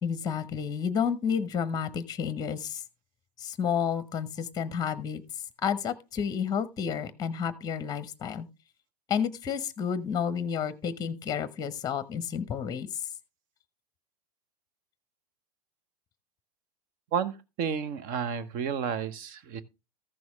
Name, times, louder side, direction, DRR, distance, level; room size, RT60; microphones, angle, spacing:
voice 1, 0.0-2.8 3.4-5.2 5.6-8.5 9.1-12.9, left 7 dB, 20° left, 0.9 m, -30 dB
voice 2, 17.1-19.6, right 7 dB, 45° right, 1.0 m, -31 dB
14.0 x 6.2 x 3.5 m
figure-of-eight pair, 90°, 20 cm